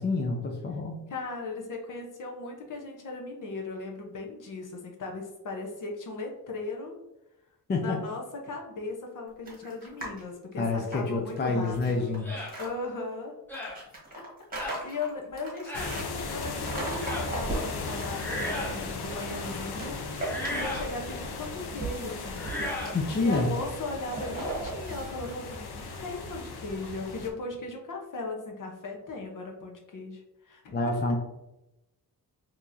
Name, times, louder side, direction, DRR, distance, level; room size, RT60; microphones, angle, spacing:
voice 1, 0.0-1.0 7.7-8.0 10.6-12.5 22.9-23.5 30.7-31.2, left 3 dB, 30° left, 1 dB, 0.4 m, -28 dB
voice 2, 1.1-6.9 7.8-12.1 12.6-13.3 13.7-13.8 14.1-14.2 14.6-20.0 20.5-22.5 22.8-30.8, left 3 dB, 55° left, 1 dB, 0.9 m, -38 dB
sound 1, 9.5-10.2 10.6-12.7 13.5-16.1 16.6-18.0 18.3-19.4 19.8-21.0 21.3-25.4, right 2 dB, 20° right, 1.4 m, -38 dB
sound 2, 12.2-12.5 13.5-13.8 14.6-14.8 15.6-16.0 17.0-17.3 18.1-18.8 20.2-20.9 22.3-23.0, left 1 dB, 5° left, 0.9 m, -35 dB
sound 3, 15.7-27.3, left 3 dB, 80° left, 0.7 m, -37 dB
4.5 x 3.0 x 2.6 m, 0.92 s
wide cardioid pair, 155°, 38 cm